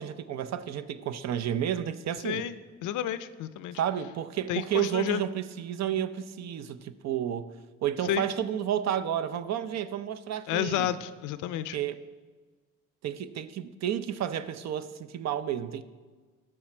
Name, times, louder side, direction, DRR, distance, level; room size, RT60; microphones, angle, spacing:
voice 1, 0.0-2.5 3.7-7.6 7.8-10.9 11.7-12.0 13.0-15.8, right 10 dB, 60° right, 13 dB, 0.5 m, -31 dB
voice 2, 2.2-2.5 2.8-3.8 4.5-5.2 8.1-8.3 10.5-11.8, left 11 dB, 85° left, 14 dB, 0.5 m, -30 dB
13.0 x 4.9 x 4.4 m, 1.4 s
cardioid pair, 90°, 30 cm